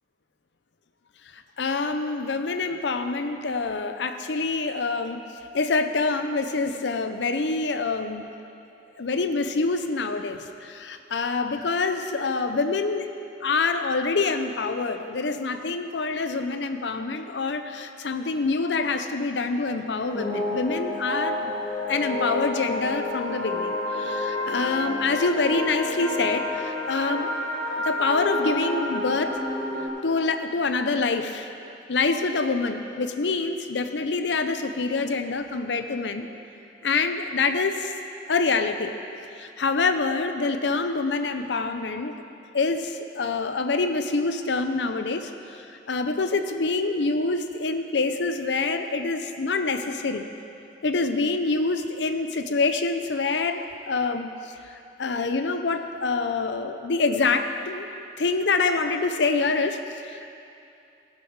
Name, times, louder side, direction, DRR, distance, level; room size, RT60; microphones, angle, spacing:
voice 1, 1.3-5.2 5.5-8.3 9.0-13.1 13.4-21.5 21.9-27.3 27.8-29.4 30.0-31.5 31.9-36.3 36.8-37.9 38.3-38.9 39.4-42.1 42.5-45.3 45.9-50.3 50.8-54.5 55.0-57.9 58.2-60.3, left 3 dB, 85° left, 7 dB, 0.7 m, -26 dB
sound 1, 20.1-29.9, left 1 dB, 5° left, 2.2 m, -29 dB
17.5 x 7.5 x 4.8 m, 2.7 s
head